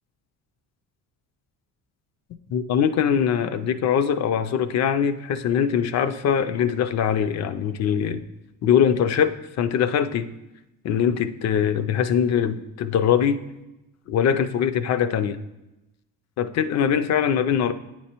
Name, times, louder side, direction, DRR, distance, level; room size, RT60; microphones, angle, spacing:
voice 1, 2.5-8.2 8.6-10.3 10.8-13.4 14.1-15.4 16.4-17.7, left 8 dB, 45° left, 11 dB, 0.4 m, -22 dB
8.8 x 4.4 x 2.9 m, 0.97 s
cardioid pair, 90°, 38 cm